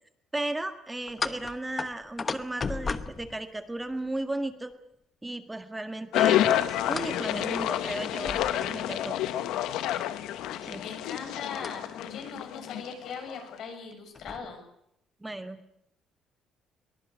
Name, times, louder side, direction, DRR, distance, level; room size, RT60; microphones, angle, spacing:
voice 1, 0.3-4.7 5.2-9.2 10.6-10.8 15.2-15.6, right 2 dB, 10° right, 8 dB, 1.8 m, -35 dB
sound 1, 1.1-4.1 6.9-7.2 7.6-7.7 8.2-9.0 11.6-11.7 12.7-12.8 13.1-13.2 13.9-14.5, left 4 dB, 25° left, 1.1 m, -35 dB
sound 2, 6.1-13.4, left 12 dB, 90° left, 1.5 m, -29 dB
voice 2, 10.5-14.6, left 5 dB, 65° left, 4 dB, 7.2 m, -40 dB
23.0 x 20.5 x 8.5 m, 0.76 s
cardioid pair, 140°, 0 cm